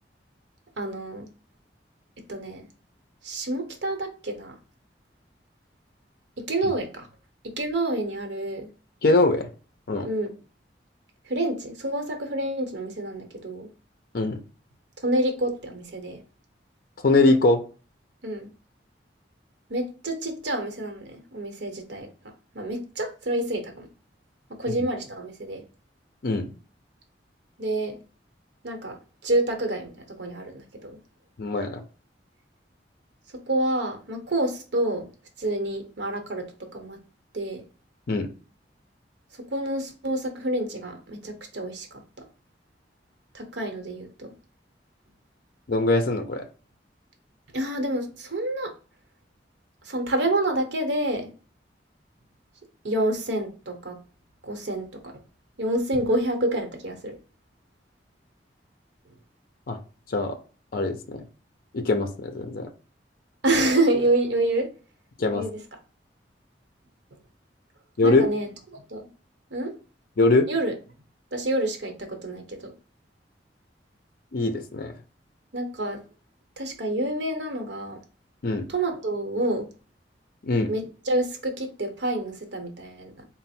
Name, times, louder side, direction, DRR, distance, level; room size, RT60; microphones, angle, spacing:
voice 1, 0.8-1.3 2.3-2.6 3.2-4.5 6.5-7.1 7.6-8.7 10.0-10.3 11.3-13.7 15.0-16.2 18.2-18.5 19.7-22.1 22.5-23.9 24.6-25.6 27.6-28.0 28.6-31.0 33.5-35.1 35.4-36.4 36.7-37.0 37.3-37.6 39.5-42.2 43.3-44.3 47.5-48.7 49.8-51.3 52.8-53.9 54.4-55.1 55.6-57.2 63.4-64.7 65.3-65.6 68.0-69.1 69.5-69.7 70.5-70.7 71.3-72.7 75.5-76.0 76.6-78.0 78.7-79.7 80.7-83.2, right 1 dB, 80° right, 5 dB, 0.9 m, -28 dB
voice 2, 9.0-9.5 9.9-10.1 14.1-14.4 17.0-17.6 24.7-24.8 26.2-26.5 31.4-31.8 38.1-38.3 45.7-46.5 59.7-59.8 60.1-60.4 60.7-61.2 61.7-62.7 65.2-65.4 68.0-68.3 70.2-70.5 74.3-74.9 78.4-78.7 80.4-80.7, left 2 dB, 55° left, 6 dB, 0.5 m, -22 dB
4.0 x 2.0 x 4.2 m, 0.36 s
head